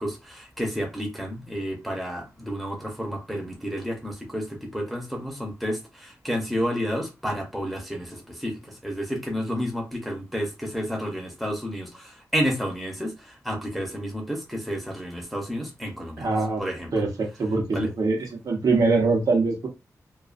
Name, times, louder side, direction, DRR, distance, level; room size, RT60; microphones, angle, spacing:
voice 1, 0.0-16.3 16.6-16.9 17.7-17.9, equal, ahead, 0.7 m, -31 dB
voice 2, 16.2-16.6 16.9-18.2 18.4-19.7, right 3 dB, 75° right, 0.8 m, -23 dB
2.4 x 2.3 x 2.5 m
wide cardioid pair, 140°, 6 cm